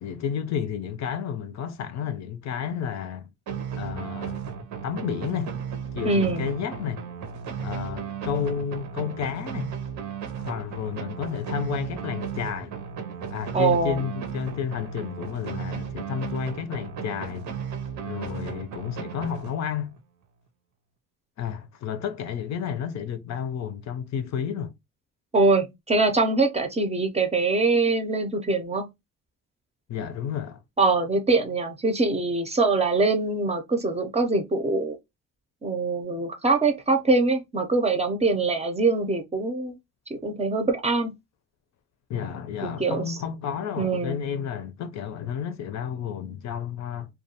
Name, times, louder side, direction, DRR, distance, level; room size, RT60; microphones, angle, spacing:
voice 1, 0.0-3.3 3.8-4.4 4.8-5.6 5.9-7.0 7.6-9.7 10.4-12.7 13.3-17.5 18.0-19.9 21.4-24.7 29.9-30.6 42.1-47.1, left 8 dB, 65° left, 0.5 m, -31 dB
sound 1, 3.5-20.0, right 7 dB, 75° right, 0.7 m, -35 dB
voice 2, 6.0-6.5 13.5-14.0 25.3-28.9 30.8-35.0 35.6-39.8 40.1-41.1 42.6-43.2 43.8-44.2, right 3 dB, 20° right, 0.5 m, -23 dB
2.3 x 2.2 x 2.7 m
cardioid pair, 90°, 30 cm